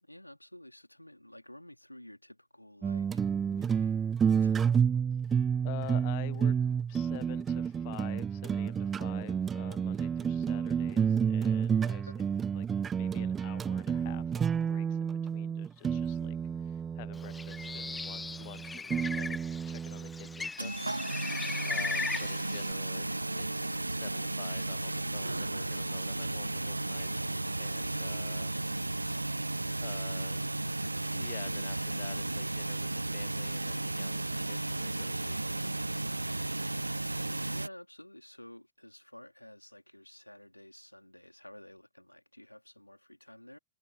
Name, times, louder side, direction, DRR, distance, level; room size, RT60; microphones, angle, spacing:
voice 1, 0.0-3.9 4.2-4.7 12.1-12.2 37.1-43.6, left 1 dB, 90° left, 3.7 m, -52 dB
sound 1, 2.8-20.5, right 7 dB, 20° right, 0.5 m, -30 dB
voice 2, 5.1-12.1 12.5-12.7 12.9-19.4 19.6-20.7 21.7-27.2 27.6-28.6 29.8-30.4 31.1-35.4, left 24 dB, 50° left, 0.9 m, -49 dB
Bird, 17.2-22.7, left 4 dB, 10° left, 0.8 m, -38 dB
sound 2, 20.6-37.7, right 2 dB, 85° right, 0.4 m, -34 dB
figure-of-eight pair, 90°, 0 cm